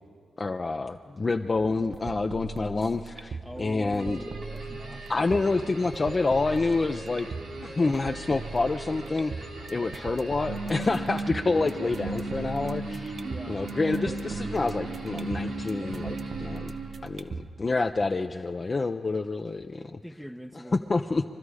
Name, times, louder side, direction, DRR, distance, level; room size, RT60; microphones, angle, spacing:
voice 1, 0.4-4.2 5.1-7.3 7.6-13.1 13.5-16.7 17.0-20.0 20.7-21.2, left 3 dB, 40° left, 5 dB, 0.4 m, -28 dB
sound 1, 1.6-17.6, right 4 dB, 60° right, 0.6 m, -40 dB
voice 2, 3.4-5.3 13.2-13.6 20.0-20.8, equal, ahead, 4 dB, 0.6 m, -43 dB
sound 2, 4.0-17.1, right 2 dB, 90° right, 2.2 m, -37 dB
23.0 x 12.5 x 4.8 m, 2.3 s
supercardioid pair, 50°, 0 cm